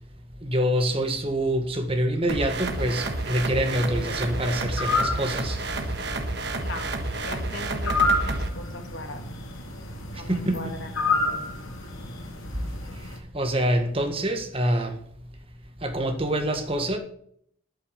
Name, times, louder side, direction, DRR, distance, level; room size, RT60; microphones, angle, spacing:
voice 1, 0.4-5.8 10.1-10.8 12.5-15.0 15.8-17.0, right 1 dB, 25° right, 1.6 m, -26 dB
sound 1, 2.3-8.5, right 2 dB, 55° right, 1.4 m, -30 dB
sound 2, 2.5-13.2, left 2 dB, 85° left, 3.1 m, -31 dB
voice 2, 6.5-9.2 10.1-11.5, left 2 dB, 70° left, 2.4 m, -39 dB
11.0 x 8.0 x 6.8 m
head